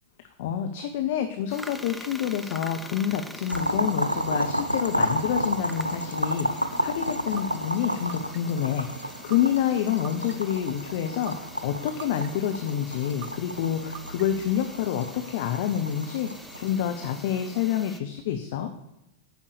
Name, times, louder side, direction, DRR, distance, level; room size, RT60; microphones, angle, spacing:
voice 1, 0.4-18.7, left 9 dB, 55° left, 7 dB, 0.8 m, -28 dB
sound 1, 1.5-18.0, equal, ahead, 0.7 m, -45 dB
Boiling, 3.5-16.7, equal, 90° right, 0.6 m, -31 dB
sound 2, 7.4-7.5 8.1-8.6 9.3-9.4 10.0-10.6 11.3-11.4 12.0-12.5 13.2-13.3 13.9-14.5, right 10 dB, 45° right, 0.6 m, -41 dB
9.3 x 5.5 x 6.6 m, 0.87 s
figure-of-eight pair, 90°, 0 cm